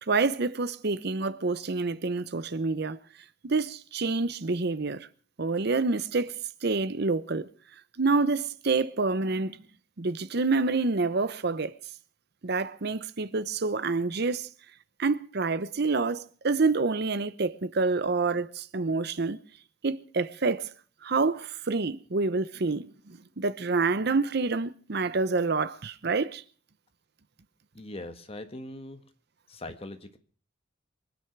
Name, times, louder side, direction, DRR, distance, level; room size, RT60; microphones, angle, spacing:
voice 1, 0.1-3.0 3.4-5.1 5.4-7.5 8.0-9.6 10.0-11.7 12.4-14.5 15.0-19.4 19.8-20.7 21.0-26.4, right 3 dB, 55° right, 0.8 m, -27 dB
voice 2, 27.7-29.0 29.5-30.2, left 1 dB, 30° left, 1.5 m, -41 dB
23.5 x 9.8 x 6.0 m
head